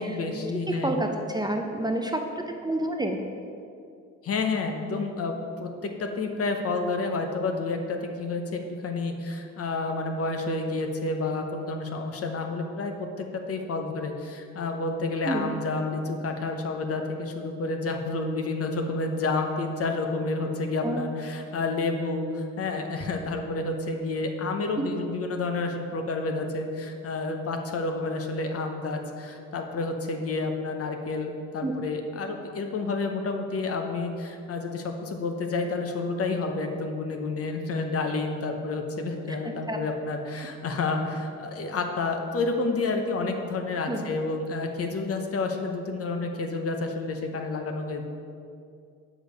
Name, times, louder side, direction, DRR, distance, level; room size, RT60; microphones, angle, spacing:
voice 1, 0.0-1.0 4.2-5.7 6.0-48.0, left 3 dB, 50° left, 4 dB, 0.8 m, -30 dB
voice 2, 0.7-3.2 15.3-15.5 20.8-21.0 24.8-24.9 31.6-31.7 39.4-39.8 43.9-44.0, right 1 dB, 15° right, 3 dB, 0.5 m, -29 dB
6.3 x 5.1 x 5.1 m, 2.4 s
cardioid pair, 90°, 30 cm